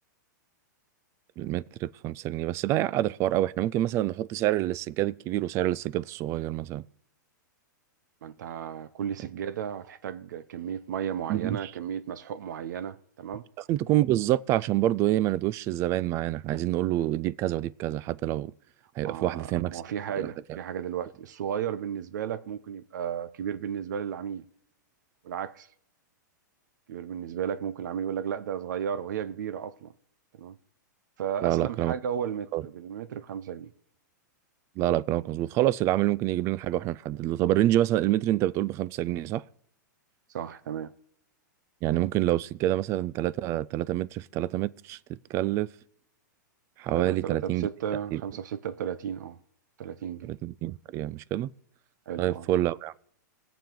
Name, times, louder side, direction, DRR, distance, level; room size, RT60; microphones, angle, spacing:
voice 1, 1.4-6.8 11.3-11.7 13.7-18.5 19.0-19.8 20.2-20.3 31.4-31.9 32.5-32.6 34.8-39.4 41.8-45.0 45.3-45.7 46.8-47.7 48.1-48.2 50.3-51.5 52.2-53.0, right 14 dB, 25° right, 0.3 m, -27 dB
voice 2, 8.2-13.4 19.0-24.4 25.2-25.7 26.9-29.9 30.4-30.5 31.2-33.7 40.3-40.9 47.0-49.4 49.8-50.4 52.1-52.5, right 8 dB, 70° right, 0.8 m, -34 dB
19.5 x 7.1 x 3.9 m
hypercardioid pair, 145°, 10 cm